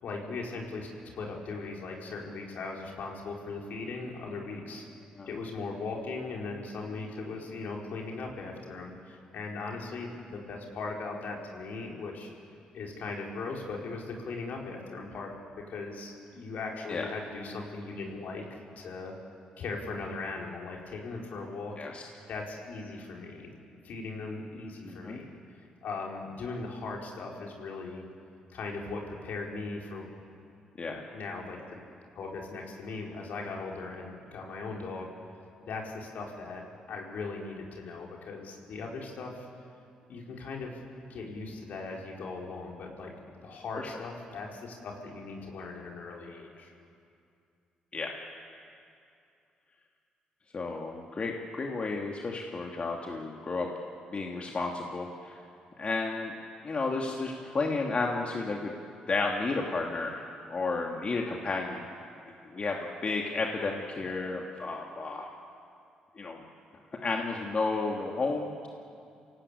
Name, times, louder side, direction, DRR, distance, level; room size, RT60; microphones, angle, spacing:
voice 1, 0.0-0.9 1.2-4.8 5.3-12.3 12.7-15.3 15.7-19.2 19.6-21.7 22.3-23.5 23.8-25.2 25.8-28.1 28.5-30.1 30.9-31.8 32.1-35.1 35.6-39.5 40.1-40.8 41.1-43.1 43.4-46.7, left 3 dB, 65° left, 0 dB, 4.9 m, -39 dB
voice 2, 24.8-25.2 30.8-31.0 43.7-43.9 47.9-48.1 50.5-53.7 54.1-55.4 55.8-56.3 56.6-58.7 59.1-61.8 62.5-62.8 63.0-65.3 66.2-66.4 67.0-68.7, left 3 dB, 40° left, 1 dB, 2.5 m, -32 dB
28.0 x 18.0 x 8.6 m, 2.5 s
supercardioid pair, 50°, 3 cm